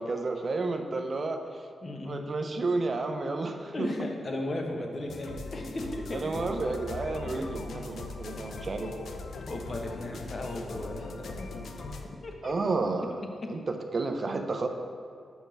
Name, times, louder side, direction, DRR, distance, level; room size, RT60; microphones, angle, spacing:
voice 1, 0.0-1.7 2.0-3.9 6.1-9.2 12.4-13.1 13.5-14.7, right 3 dB, 40° right, 5 dB, 0.5 m, -31 dB
voice 2, 1.8-2.2 3.7-6.2 7.2-7.7 9.5-11.5 12.2-12.5, left 1 dB, 35° left, 2 dB, 0.8 m, -36 dB
sound 1, 5.1-12.1, left 3 dB, 65° left, 0.5 m, -40 dB
5.3 x 4.8 x 6.3 m, 2.3 s
wide cardioid pair, 125°, 0 cm